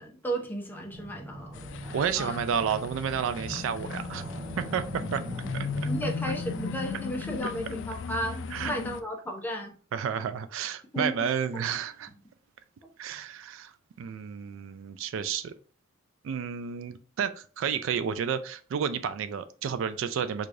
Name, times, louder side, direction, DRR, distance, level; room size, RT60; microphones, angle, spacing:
voice 1, 0.0-2.4 5.8-9.7 10.9-11.1 11.5-11.6, equal, 10° left, 1 dB, 0.6 m, -34 dB
sound 1, 0.9-6.6, right 1 dB, 35° right, 0.7 m, -40 dB
sound 2, 1.5-9.0, left 5 dB, 60° left, 0.3 m, -37 dB
voice 2, 1.9-4.2 4.6-5.2 5.5-5.7 7.4-7.5 8.5-8.7 9.9-12.1 13.0-13.7 14.0-15.5 16.2-20.5, right 7 dB, 65° right, 12 dB, 0.3 m, -31 dB
4.6 x 2.4 x 2.5 m, 0.40 s
head